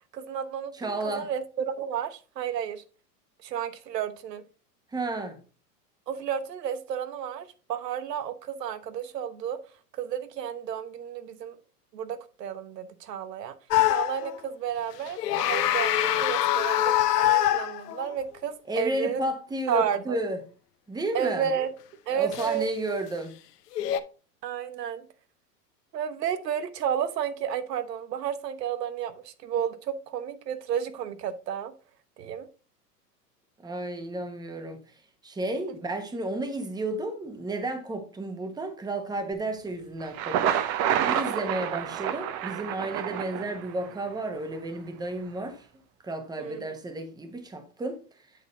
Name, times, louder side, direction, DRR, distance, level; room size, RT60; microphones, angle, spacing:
voice 1, 0.1-2.8 3.4-4.4 6.1-9.6 10.0-11.5 11.9-13.5 13.9-19.2 19.7-20.2 21.1-21.7 22.1-22.7 24.4-25.1 25.9-31.7 32.2-32.5 46.4-46.6, right 8 dB, 80° right, 1.1 m, -32 dB
voice 2, 0.7-1.3 4.9-5.4 18.7-20.4 20.9-21.5 22.1-23.3 33.6-45.7 46.0-48.3, right 2 dB, 10° right, 1.1 m, -32 dB
sound 1, 13.7-14.4 15.1-18.1 22.3-22.5 23.7-24.0, left 13 dB, 75° left, 0.9 m, -24 dB
Thunder, 40.0-44.0, right 10 dB, 30° right, 0.7 m, -28 dB
8.9 x 4.0 x 3.9 m
hypercardioid pair, 115°, 48 cm